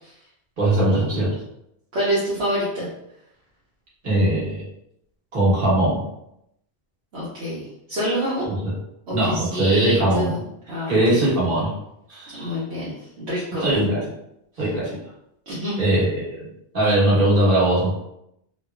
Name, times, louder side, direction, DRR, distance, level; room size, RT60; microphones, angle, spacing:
voice 1, 0.6-1.4 4.0-4.7 5.3-6.0 8.4-8.7 9.1-10.3 10.9-11.7 12.1-12.5 13.6-14.0 14.6-15.0 15.8-16.4 16.7-17.9, right 1 dB, 50° right, -7 dB, 1.2 m, -20 dB
voice 2, 1.9-2.9 7.1-8.5 9.1-10.4 10.7-11.2 12.4-13.7 15.5-15.9, equal, 70° right, -9 dB, 1.0 m, -27 dB
3.0 x 2.2 x 2.3 m, 0.81 s
omnidirectional pair, 1.2 m